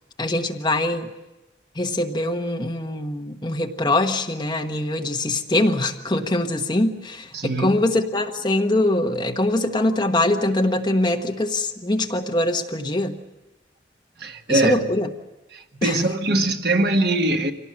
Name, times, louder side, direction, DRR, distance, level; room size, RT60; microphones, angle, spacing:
voice 1, 0.2-1.1 1.7-13.2 14.5-15.1 15.8-16.0, left 1 dB, 25° left, 1.3 m, -23 dB
voice 2, 7.3-7.8 14.2-14.8 15.5-17.5, right 2 dB, 65° right, 1.5 m, -22 dB
25.0 x 18.0 x 7.6 m
head